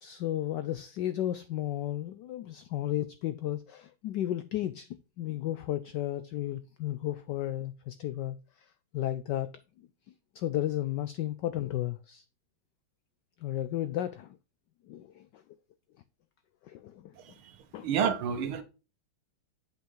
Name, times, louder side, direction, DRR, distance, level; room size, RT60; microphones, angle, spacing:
voice 1, 0.0-8.4 8.9-9.5 10.3-12.2 13.4-14.4 14.9-15.4 16.6-17.1 17.7-17.9, left 13 dB, 80° left, 0.9 m, -33 dB
voice 2, 17.2-18.6, right 7 dB, 75° right, 1.8 m, -31 dB
7.8 x 5.5 x 3.1 m
omnidirectional pair, 2.4 m